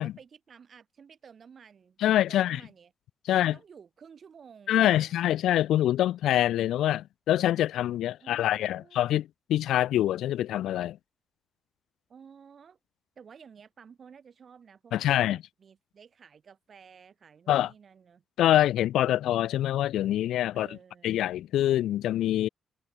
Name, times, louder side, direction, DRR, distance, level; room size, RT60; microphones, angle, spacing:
voice 1, 0.0-2.9 3.3-5.3 8.2-9.1 12.1-12.8 13.2-18.2 20.5-21.2, right 6 dB, 45° right, 7.4 m, -53 dB
voice 2, 2.0-2.6 3.3-3.6 4.7-11.0 14.9-15.4 17.5-17.7 18.4-20.7 21.0-22.5, left 13 dB, 85° left, 0.3 m, -25 dB
cardioid pair, 125°, 0 cm